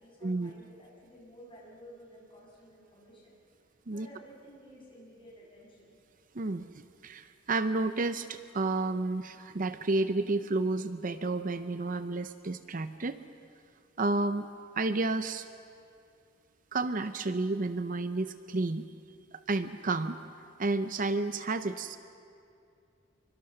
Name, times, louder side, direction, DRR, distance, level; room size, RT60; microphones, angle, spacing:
voice 1, 0.0-3.4 3.9-6.0, equal, 25° left, -4 dB, 7.2 m, -53 dB
voice 2, 6.3-6.7 7.0-13.2 14.0-14.5 14.8-15.5 16.7-18.9 19.5-20.2 20.6-22.0, right 3 dB, 45° right, 11 dB, 0.7 m, -31 dB
27.0 x 24.5 x 6.6 m, 2.5 s
head